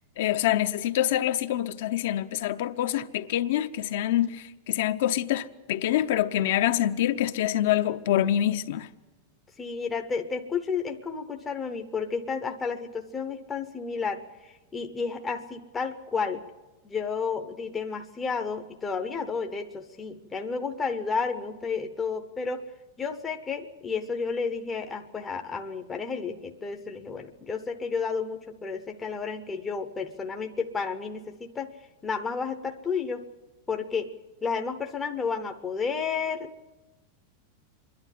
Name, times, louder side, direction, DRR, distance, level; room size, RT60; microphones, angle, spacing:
voice 1, 0.2-8.9, left 12 dB, 55° left, 0.7 m, -26 dB
voice 2, 9.6-16.4 16.8-22.6 23.0-31.7 32.0-33.2 33.7-34.1 34.4-36.7, left 5 dB, 10° left, 0.7 m, -31 dB
26.5 x 11.5 x 9.8 m
supercardioid pair, 180°, 0 cm